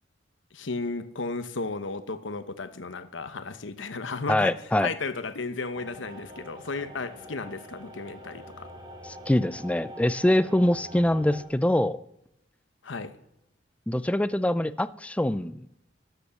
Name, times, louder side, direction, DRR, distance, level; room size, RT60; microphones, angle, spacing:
voice 1, 0.5-8.7 12.8-13.2, left 3 dB, 75° left, 11 dB, 1.0 m, -34 dB
voice 2, 4.3-4.9 9.3-12.0 13.9-15.7, left 1 dB, 5° left, 15 dB, 0.4 m, -24 dB
sound 1, 5.7-11.4, equal, 25° right, 2.1 m, -44 dB
12.5 x 8.1 x 7.0 m, 0.81 s
head